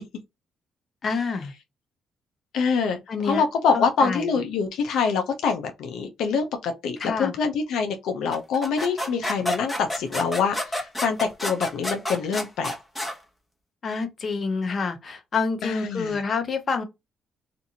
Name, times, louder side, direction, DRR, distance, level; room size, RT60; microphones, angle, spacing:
voice 1, 1.0-1.5 3.1-3.4 3.7-4.3 7.0-7.3 13.8-16.8, left 4 dB, 45° left, 0.7 m, -27 dB
voice 2, 2.5-3.0 3.2-12.7 15.6-16.2, left 5 dB, 80° left, 0.5 m, -25 dB
sound 1, 8.3-13.2, equal, 15° left, 1.0 m, -29 dB
2.5 x 2.5 x 2.7 m
cardioid pair, 90°, 0 cm